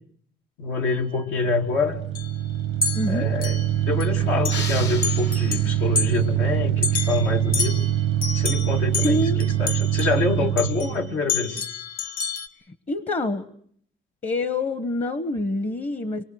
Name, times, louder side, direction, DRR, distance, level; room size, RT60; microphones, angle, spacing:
voice 1, 0.6-2.0 3.1-3.6 3.8-7.9 8.3-11.7, left 3 dB, 85° left, 1 dB, 2.3 m, -26 dB
sound 1, 0.9-1.0 2.1-2.3 2.8-4.1 4.4-4.8 5.0-6.2 6.8-10.9 11.3-12.5, left 5 dB, 45° left, 1.8 m, -30 dB
sound 2, 1.3-11.2, right 12 dB, 85° right, 0.8 m, -24 dB
voice 2, 2.9-3.3 9.0-9.4 12.7-13.5 14.2-16.2, left 2 dB, 30° left, 12 dB, 1.0 m, -26 dB
sound 3, 4.5-6.1, left 4 dB, 65° left, 1.9 m, -35 dB
24.5 x 21.5 x 6.4 m, 0.64 s
cardioid pair, 90°, 20 cm